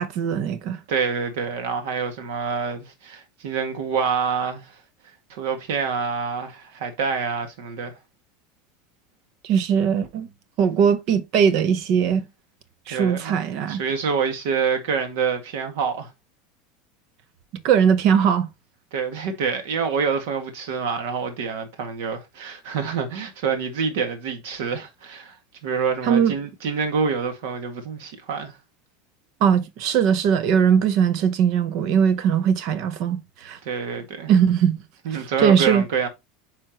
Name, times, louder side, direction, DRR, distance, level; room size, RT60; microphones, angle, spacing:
voice 1, 0.0-0.8 9.4-10.3 10.6-12.3 12.9-13.8 17.6-18.5 26.0-26.3 29.4-33.6 34.3-34.8 35.1-35.8, right 7 dB, 40° right, 0.8 m, -20 dB
voice 2, 0.9-4.8 5.3-7.9 12.9-13.4 13.7-16.1 18.9-25.4 25.6-28.6 33.6-34.3 35.1-36.1, right 6 dB, 70° right, 1.9 m, -26 dB
8.9 x 4.4 x 2.9 m
supercardioid pair, 180°, 0 cm